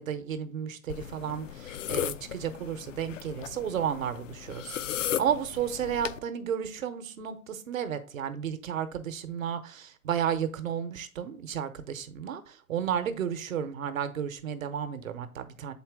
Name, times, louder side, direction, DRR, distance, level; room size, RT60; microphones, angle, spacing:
voice 1, 0.0-15.7, right 8 dB, 65° right, 1.0 m, -33 dB
sound 1, 0.9-6.2, left 10 dB, 60° left, 0.6 m, -36 dB
7.2 x 4.4 x 3.6 m
figure-of-eight pair, 115°, 43 cm